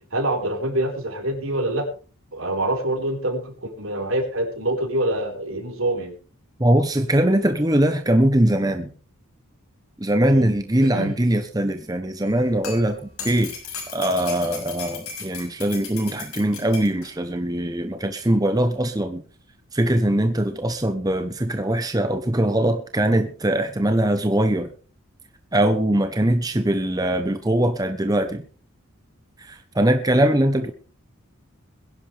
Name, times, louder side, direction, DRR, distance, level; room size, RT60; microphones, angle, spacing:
voice 1, 0.1-1.9 2.3-6.1 10.3-11.1, right 1 dB, 70° right, 1 dB, 4.5 m, -26 dB
voice 2, 6.6-8.9 10.0-13.0 13.2-13.5 13.9-19.2 19.7-24.7 25.5-28.4 29.4-30.7, right 1 dB, 15° right, 7 dB, 0.9 m, -21 dB
sound 1, 12.3-17.1 18.2-18.3, left 5 dB, 80° left, 6.6 m, -36 dB
21.5 x 11.0 x 3.4 m, 0.39 s
head